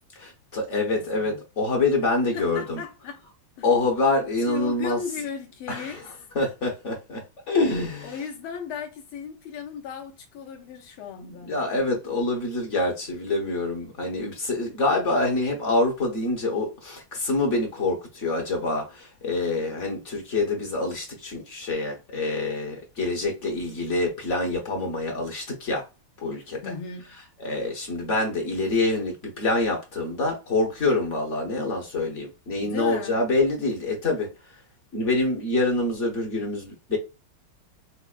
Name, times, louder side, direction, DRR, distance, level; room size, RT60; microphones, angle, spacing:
voice 1, 0.1-2.8 3.6-5.0 5.7-6.0 6.3-7.2 7.5-8.2 11.4-25.8 26.2-26.7 27.4-34.6 34.9-37.0, left 2 dB, 45° left, 1.1 m, -26 dB
voice 2, 0.9-1.4 2.3-3.2 3.6-3.7 4.5-6.1 8.0-11.6 26.6-27.1 32.6-33.2, left 7 dB, 85° left, 1.7 m, -36 dB
5.8 x 2.1 x 2.3 m
omnidirectional pair, 2.3 m